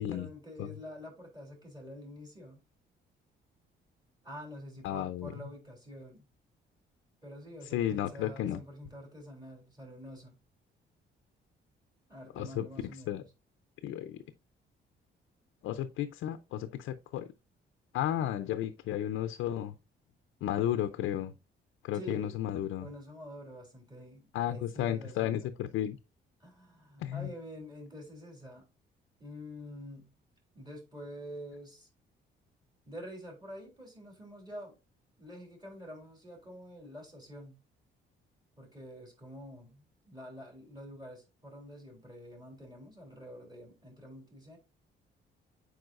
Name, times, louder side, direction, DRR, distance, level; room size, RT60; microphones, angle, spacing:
voice 1, 0.0-2.6 4.2-6.3 7.2-10.4 12.1-13.3 21.9-22.4 22.8-25.5 26.4-28.6 29.2-30.1 30.5-31.9 32.9-34.8 35.2-37.6 38.6-44.6, equal, 20° right, 3.2 m, -47 dB
voice 2, 4.8-5.3 7.7-8.6 12.4-12.7 13.1-13.2 13.8-14.2 15.6-17.3 17.9-19.7 20.4-21.3 21.8-22.9 24.3-26.0 27.0-27.3, left 11 dB, 85° left, 0.5 m, -33 dB
7.8 x 4.8 x 2.5 m
cardioid pair, 90°, 20 cm